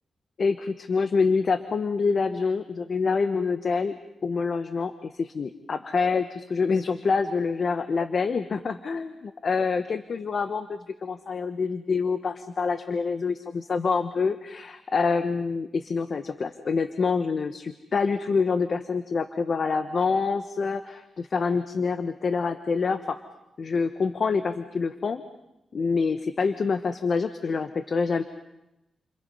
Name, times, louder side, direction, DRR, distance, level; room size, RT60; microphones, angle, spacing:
voice 1, 0.4-3.9 4.2-23.2 23.6-25.2 25.7-28.2, left 5 dB, 55° left, 9 dB, 1.2 m, -26 dB
29.5 x 28.0 x 5.6 m, 0.92 s
cardioid pair, 75°, 0 cm